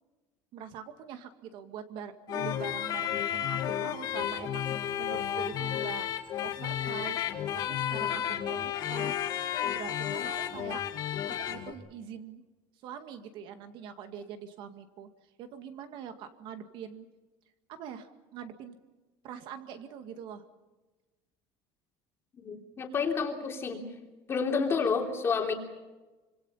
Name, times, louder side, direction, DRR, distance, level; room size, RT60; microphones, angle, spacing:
voice 1, 0.5-10.8 11.3-12.4 12.8-15.1 15.4-17.1 17.7-18.8 19.2-20.4, right 8 dB, 50° right, 7 dB, 2.0 m, -44 dB
sound 1, 2.3-11.7, left 10 dB, 40° left, 1.9 m, -32 dB
voice 2, 22.3-23.8 24.3-25.5, left 5 dB, 25° left, 2 dB, 3.3 m, -29 dB
26.0 x 26.0 x 5.7 m, 1.2 s
cardioid pair, 170°, 11 cm